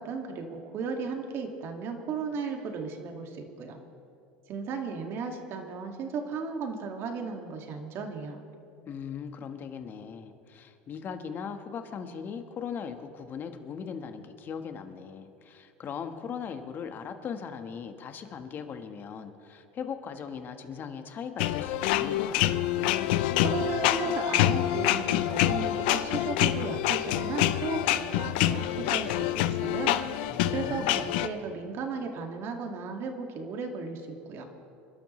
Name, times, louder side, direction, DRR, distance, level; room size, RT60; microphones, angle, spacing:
voice 1, 0.0-3.8 4.5-8.4 23.4-30.2 30.5-34.5, right 4 dB, 50° right, 3 dB, 2.1 m, -35 dB
voice 2, 8.9-22.5 30.3-31.1, left 7 dB, 40° left, 7 dB, 1.3 m, -39 dB
sound 1, 21.4-31.3, left 13 dB, 80° left, 0.6 m, -26 dB
27.5 x 12.0 x 3.2 m, 2.6 s
supercardioid pair, 115°, 5 cm